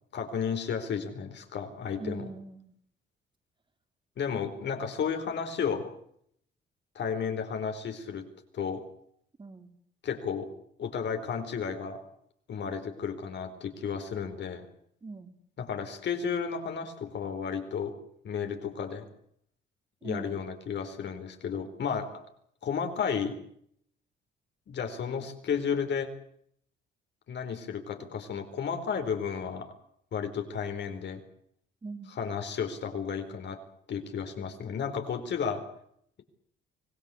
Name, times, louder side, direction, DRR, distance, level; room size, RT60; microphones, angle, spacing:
voice 1, 0.1-2.3 4.2-5.9 6.9-8.3 8.5-8.8 10.0-10.5 10.8-12.0 12.5-14.6 15.6-17.9 18.2-19.1 20.0-22.2 22.6-23.4 24.7-26.1 27.3-29.7 30.1-31.2 32.1-33.6 33.9-35.6, left 6 dB, 65° left, 7 dB, 4.4 m, -33 dB
voice 2, 2.0-2.7 9.4-9.8 15.0-15.4 20.0-20.5 31.8-32.2, right 3 dB, 25° right, 8 dB, 3.1 m, -41 dB
25.0 x 18.5 x 8.4 m, 0.67 s
cardioid pair, 90°, 20 cm